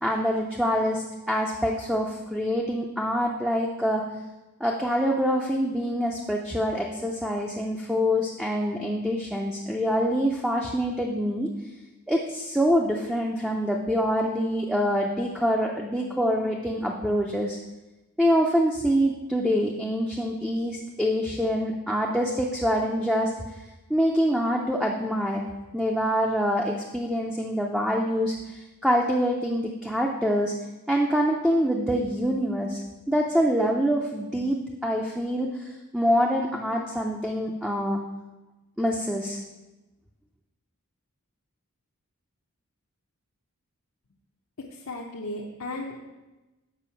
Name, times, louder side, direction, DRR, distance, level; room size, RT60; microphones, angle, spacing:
voice 1, 0.0-4.0 4.6-11.5 12.1-17.6 18.2-23.3 23.9-25.4 25.7-30.5 30.9-32.8 33.1-38.0 38.8-39.4, equal, 5° right, -1 dB, 0.5 m, -25 dB
voice 2, 44.6-46.0, left 1 dB, 65° left, -1 dB, 0.7 m, -35 dB
6.9 x 5.4 x 5.7 m, 1.1 s
head